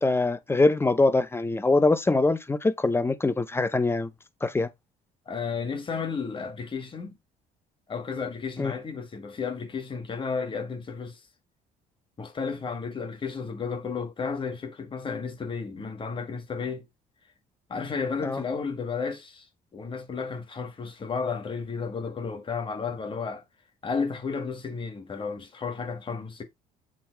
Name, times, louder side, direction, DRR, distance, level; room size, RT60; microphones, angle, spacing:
voice 1, 0.0-4.1 4.4-4.7 8.6-8.7 18.2-18.4, left 2 dB, 15° left, 0.7 m, -23 dB
voice 2, 5.2-7.1 7.9-11.2 12.2-16.9 17.7-23.4 23.8-26.4, left 5 dB, 30° left, 1.6 m, -33 dB
7.5 x 2.9 x 4.5 m
cardioid pair, 110°, 17 cm